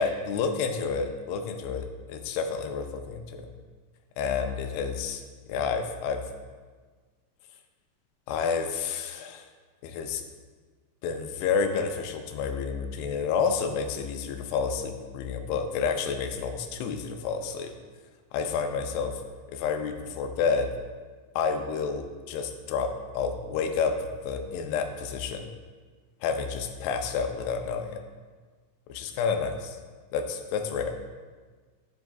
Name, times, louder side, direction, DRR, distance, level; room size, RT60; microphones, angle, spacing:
voice 1, 0.0-3.5 4.2-5.2 5.5-6.2 8.3-9.4 9.8-10.2 11.0-17.7 18.3-19.2 19.5-20.7 21.4-24.0 24.2-25.5 26.2-28.0 28.9-29.8 30.1-31.0, left 5 dB, 80° left, 6 dB, 2.6 m, -29 dB
10.5 x 7.1 x 2.3 m, 1.5 s
omnidirectional pair, 4.7 m